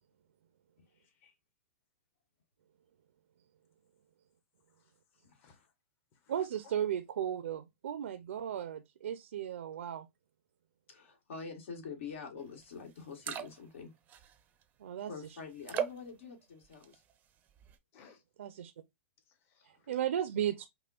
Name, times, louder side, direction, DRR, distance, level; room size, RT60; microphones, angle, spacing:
voice 1, 0.9-1.3 4.8-4.9 5.2-5.7 6.1-6.7 17.9-18.2 19.3-19.9, left 5 dB, 35° left, 1.0 m, -63 dB
voice 2, 6.3-10.1 14.8-15.1 18.4-18.7 19.6-20.7, right 10 dB, 80° right, 0.5 m, -35 dB
voice 3, 10.9-13.9 15.1-17.0, left 5 dB, 70° left, 1.6 m, -45 dB
sound 1, 12.6-12.7 13.0-13.8 14.1-14.6 15.6-16.1 16.6-17.1 17.5-17.7, right 9 dB, 20° right, 0.5 m, -38 dB
5.4 x 2.2 x 2.3 m
hypercardioid pair, 135°, 7 cm